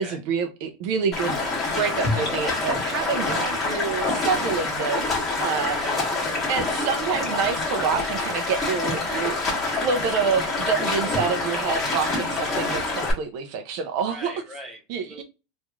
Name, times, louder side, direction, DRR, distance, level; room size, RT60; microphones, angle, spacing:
voice 1, 0.0-1.4 1.8-5.8 6.5-14.3 14.9-15.2, right 6 dB, 50° right, 0.5 m, -27 dB
Stream, 1.1-13.1, left 3 dB, 20° left, 1.4 m, -26 dB
voice 2, 5.7-6.5 14.1-14.8 15.1-15.2, right 1 dB, 5° right, 1.1 m, -40 dB
3.0 x 2.5 x 3.4 m
supercardioid pair, 165°, 0 cm